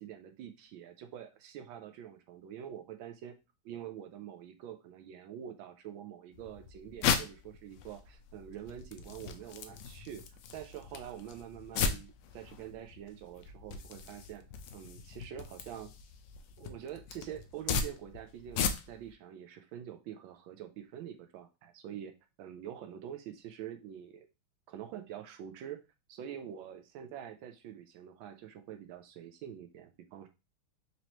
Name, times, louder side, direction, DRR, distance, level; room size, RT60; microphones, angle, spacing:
voice 1, 0.0-3.3 3.6-10.2 10.5-14.4 14.7-15.9 16.6-22.1 22.4-24.3 24.7-25.8 26.1-30.3, right 10 dB, 75° right, 8 dB, 1.2 m, -46 dB
sound 1, 6.3-19.1, left 6 dB, 80° left, 1.0 m, -37 dB
4.1 x 3.1 x 2.9 m, 0.26 s
omnidirectional pair, 2.4 m